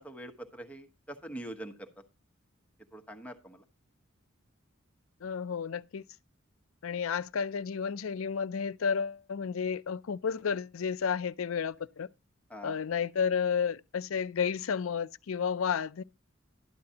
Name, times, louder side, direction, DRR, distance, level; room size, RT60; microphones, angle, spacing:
voice 1, 0.0-1.9 2.9-3.6 12.5-12.8, right 1 dB, 5° left, 1.1 m, -44 dB
voice 2, 5.2-6.0 6.8-12.1 12.6-16.0, left 6 dB, 75° left, 0.5 m, -31 dB
12.0 x 9.5 x 2.8 m
head